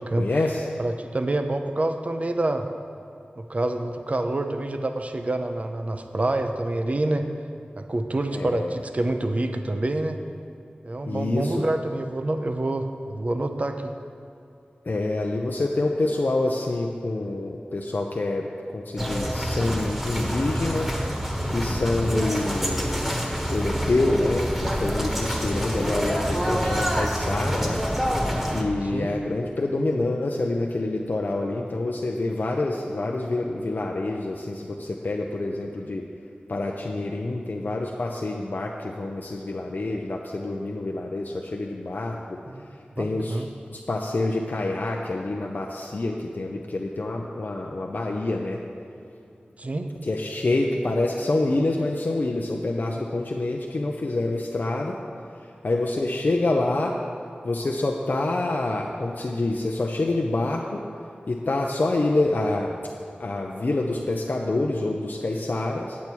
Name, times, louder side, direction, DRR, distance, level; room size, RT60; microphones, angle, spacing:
voice 1, 0.2-0.7 8.3-8.7 11.1-11.6 14.9-20.9 21.5-23.2 23.5-27.8 28.5-36.1 36.5-42.4 42.7-43.4 43.7-48.9 50.0-55.0 55.3-57.0 57.4-60.8 61.3-62.8 63.2-66.0, left 2 dB, 60° left, 0 dB, 0.6 m, -27 dB
voice 2, 0.8-2.7 3.4-7.3 7.8-10.2 10.8-13.9 28.8-29.1 42.5-42.6 43.0-43.5 49.6-49.9, right 2 dB, 40° right, 6 dB, 0.6 m, -27 dB
sound 1, 19.0-28.6, equal, 5° right, 1.2 m, -26 dB
8.3 x 8.3 x 4.5 m, 2.6 s
wide cardioid pair, 55°, 3 cm